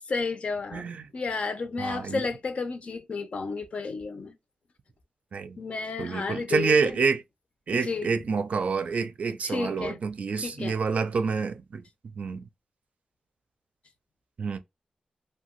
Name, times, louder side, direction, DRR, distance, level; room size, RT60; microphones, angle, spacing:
voice 1, 0.1-0.9 1.1-4.3 5.6-7.0 7.7-8.1 9.4-10.0 10.4-10.7, left 4 dB, 60° left, 0.5 m, -32 dB
voice 2, 0.7-1.0 1.8-2.2 5.3-5.6 6.0-7.2 7.7-11.8 12.2-12.4 14.4-14.6, right 5 dB, 70° right, 0.4 m, -28 dB
2.7 x 2.3 x 2.9 m
wide cardioid pair, 135°, 2 cm